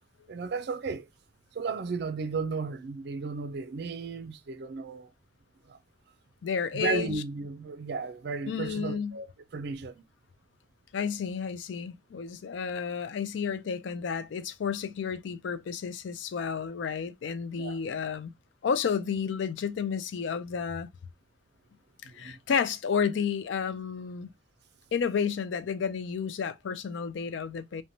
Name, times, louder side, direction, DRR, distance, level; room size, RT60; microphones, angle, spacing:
voice 1, 0.3-1.1 1.5-5.1 5.7-5.8 6.7-9.3 9.5-10.0 17.6-17.8 22.0-22.4, right 4 dB, 60° right, 0.4 m, -34 dB
voice 2, 6.4-7.2 8.5-9.2 10.9-18.3 18.6-20.9 22.0-24.3 24.9-27.8, left 6 dB, 75° left, 0.4 m, -31 dB
2.9 x 2.2 x 2.6 m
head